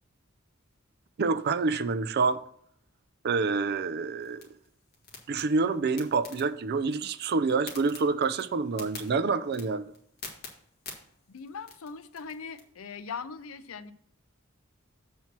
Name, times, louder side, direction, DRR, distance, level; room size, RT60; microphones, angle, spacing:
voice 1, 1.2-2.4 3.2-4.4 5.3-9.9, right 4 dB, 50° right, 0.4 m, -27 dB
sound 1, 4.2-12.6, left 4 dB, 50° left, 1.7 m, -48 dB
voice 2, 11.3-13.9, left 5 dB, 80° left, 0.5 m, -40 dB
7.2 x 4.3 x 5.9 m
head